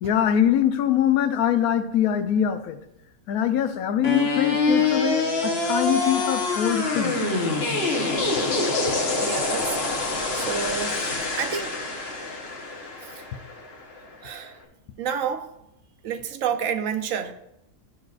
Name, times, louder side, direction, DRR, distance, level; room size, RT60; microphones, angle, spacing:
voice 1, 0.0-2.8 3.3-7.2, left 10 dB, 80° left, 1.1 m, -23 dB
sound 1, 4.0-14.1, left 3 dB, 50° left, 1.1 m, -25 dB
voice 2, 9.2-10.0 10.3-11.1 11.4-11.8 13.0-13.2 14.2-14.6 15.0-15.5 16.0-17.3, right 7 dB, 70° right, 0.9 m, -29 dB
11.5 x 6.3 x 2.4 m
omnidirectional pair, 1.6 m